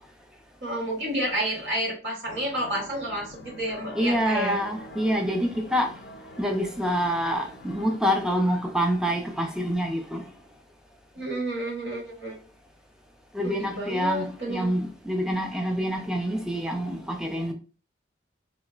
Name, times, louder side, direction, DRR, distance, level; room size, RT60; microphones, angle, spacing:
voice 1, 0.6-4.6 11.1-12.4 13.4-14.7, right 1 dB, 70° right, 1.4 m, -30 dB
sound 1, 2.2-8.0, left 1 dB, 60° left, 0.4 m, -45 dB
voice 2, 4.0-5.9 6.4-10.3 13.3-17.5, equal, 5° right, 0.4 m, -26 dB
3.7 x 2.0 x 2.3 m
head